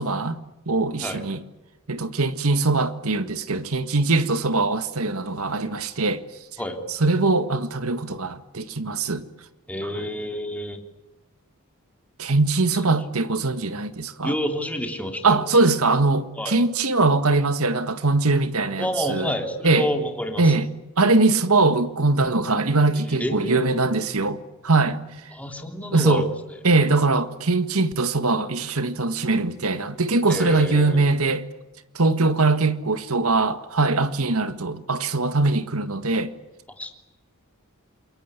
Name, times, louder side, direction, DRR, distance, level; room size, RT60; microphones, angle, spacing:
voice 1, 0.0-1.4 1.9-6.2 6.9-9.2 9.8-10.0 12.2-14.3 15.2-19.3 19.6-19.9 20.4-20.7 21.0-25.0 25.9-26.2 26.6-31.4 31.9-36.3, right 3 dB, 85° right, 1.7 m, -22 dB
voice 2, 9.7-10.8 14.2-15.4 16.4-16.6 18.8-20.5 23.1-23.7 25.3-26.2 30.3-31.1 36.8-36.9, equal, 5° left, 3.2 m, -28 dB
28.0 x 22.0 x 8.3 m
head